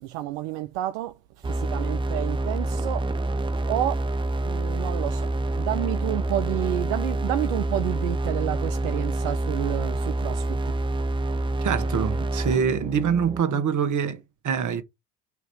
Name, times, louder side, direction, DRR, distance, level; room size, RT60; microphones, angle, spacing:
voice 1, 0.0-3.4 3.7-4.1 4.4-5.3 5.6-10.8, right 14 dB, 65° right, 0.7 m, -30 dB
sound 1, 1.4-13.4, right 2 dB, 10° right, 0.4 m, -27 dB
voice 2, 11.6-14.8, right 7 dB, 40° right, 1.4 m, -25 dB
5.9 x 3.0 x 5.6 m
hypercardioid pair, 65°, 45 cm